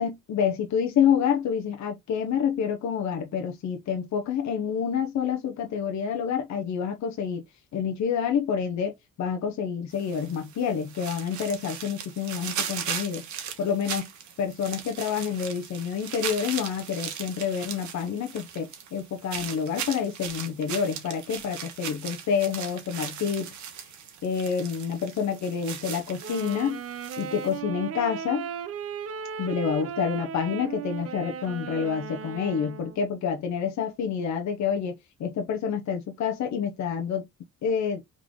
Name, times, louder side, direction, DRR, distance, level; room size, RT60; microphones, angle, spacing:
voice 1, 0.0-7.4 7.7-8.9 9.2-13.3 13.6-14.1 14.4-23.6 24.2-26.8 27.2-28.5 29.4-37.3 37.6-38.0, left 7 dB, 65° left, 0.8 m, -28 dB
sound 1, 9.9-27.6, right 8 dB, 75° right, 1.2 m, -38 dB
Wind instrument woodwind instrument, 26.2-33.0, right 7 dB, 50° right, 0.6 m, -36 dB
3.8 x 3.2 x 3.8 m
cardioid pair, 90°, 30 cm